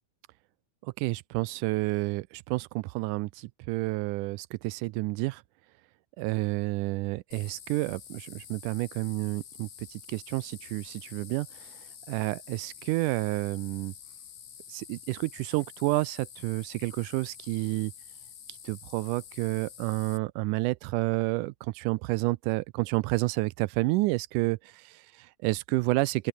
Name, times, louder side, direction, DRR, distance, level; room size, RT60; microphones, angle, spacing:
voice 1, 0.8-5.4 6.2-11.5 12.1-13.9 14.7-17.9 18.7-26.3, right 21 dB, 80° right, 1.9 m, -30 dB
sound 1, 7.3-20.2, left 8 dB, 55° left, 3.0 m, -48 dB
open air
omnidirectional pair, 3.9 m